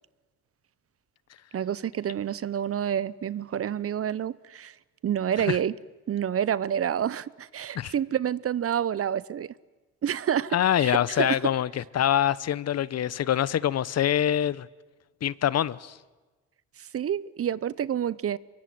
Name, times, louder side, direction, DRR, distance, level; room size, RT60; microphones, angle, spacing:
voice 1, 1.5-4.8 5.0-5.7 6.1-9.5 10.0-11.4 16.8-18.4, right 9 dB, 50° right, 0.9 m, -28 dB
voice 2, 10.5-14.7 15.2-16.0, left 10 dB, 55° left, 0.9 m, -25 dB
24.5 x 23.0 x 9.4 m
cardioid pair, 90°, 30 cm